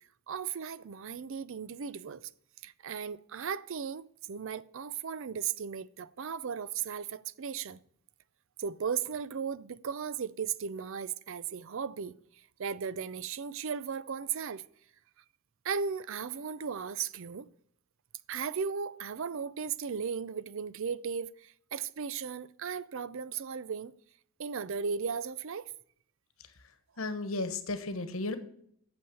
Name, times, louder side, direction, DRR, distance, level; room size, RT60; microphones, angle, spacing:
voice 1, 0.3-2.3 2.6-7.8 8.6-14.6 15.6-17.5 18.3-23.9 24.4-25.7, right 6 dB, 65° right, 0.5 m, -36 dB
voice 2, 27.0-28.4, left 2 dB, 70° left, 1.2 m, -34 dB
8.5 x 7.1 x 6.9 m
head